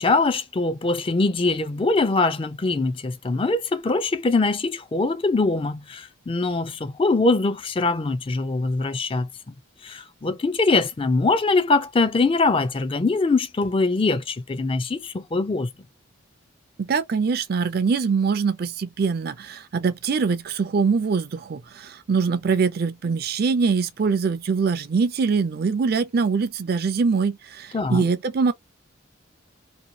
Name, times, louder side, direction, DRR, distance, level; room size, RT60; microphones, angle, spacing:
voice 1, 0.0-9.3 9.8-15.7 27.7-28.0, left 3 dB, 25° left, 0.4 m, -22 dB
voice 2, 16.8-28.5, right 5 dB, 50° right, 0.4 m, -23 dB
2.9 x 2.2 x 2.6 m
head